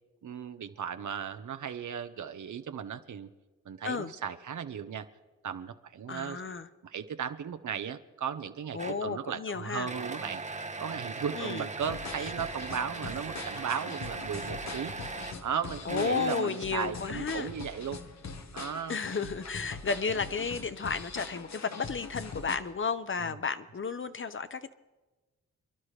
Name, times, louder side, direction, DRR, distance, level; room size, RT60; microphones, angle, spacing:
voice 1, 0.2-3.3 3.6-5.1 5.4-6.4 6.8-10.4 10.8-14.9 15.4-18.0 18.5-19.0 23.2-23.4, right 7 dB, 65° right, 10 dB, 0.9 m, -36 dB
voice 2, 6.1-6.7 8.7-9.9 11.3-11.6 12.2-12.3 15.9-17.5 18.9-24.7, left 5 dB, 40° left, 11 dB, 0.8 m, -33 dB
sound 1, 8.8-9.1 9.9-15.4 15.9-16.8, right 3 dB, 20° right, 0.9 m, -39 dB
sound 2, 11.8-22.6, left 4 dB, 55° left, 1.1 m, -42 dB
28.0 x 11.0 x 3.3 m, 1.2 s
supercardioid pair, 40°, 32 cm